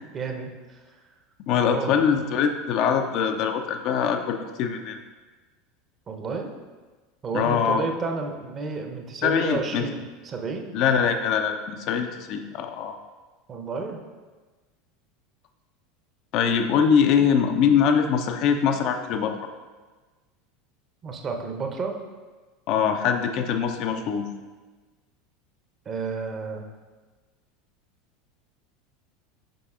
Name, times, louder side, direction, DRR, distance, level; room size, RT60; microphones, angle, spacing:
voice 1, 0.1-0.8 1.5-2.0 6.1-6.5 7.2-10.7 13.5-14.0 21.0-21.9 25.9-26.7, right 4 dB, 30° right, 3 dB, 0.8 m, -31 dB
voice 2, 1.5-5.0 7.3-7.9 9.2-9.8 10.7-13.0 16.3-19.5 22.7-24.3, left 7 dB, 45° left, 6 dB, 0.5 m, -23 dB
7.7 x 5.3 x 2.4 m, 1.3 s
figure-of-eight pair, 75°, 0 cm